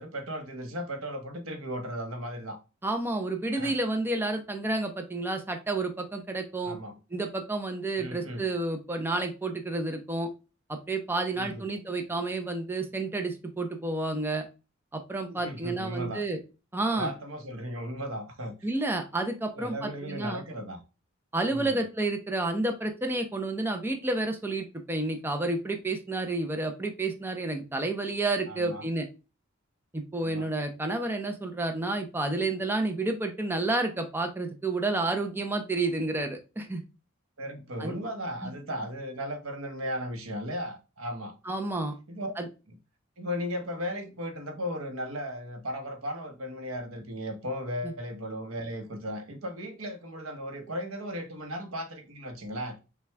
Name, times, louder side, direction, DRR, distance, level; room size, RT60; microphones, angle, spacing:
voice 1, 0.0-2.6 3.5-3.8 6.6-6.9 8.0-8.5 11.3-11.7 15.3-16.2 16.9-18.7 19.5-20.8 21.5-21.8 28.5-28.9 30.2-30.5 37.4-41.3 42.1-42.3 42.7-42.8 43.2-52.8, equal, 90° right, 0.9 m, -36 dB
voice 2, 2.8-6.8 7.1-10.3 10.7-14.4 14.9-16.4 16.7-17.1 18.6-20.4 21.3-29.1 29.9-36.8 37.8-38.0 38.4-38.5 41.5-41.9 42.4-42.5, right 2 dB, 10° right, 0.5 m, -30 dB
5.8 x 2.3 x 3.3 m
head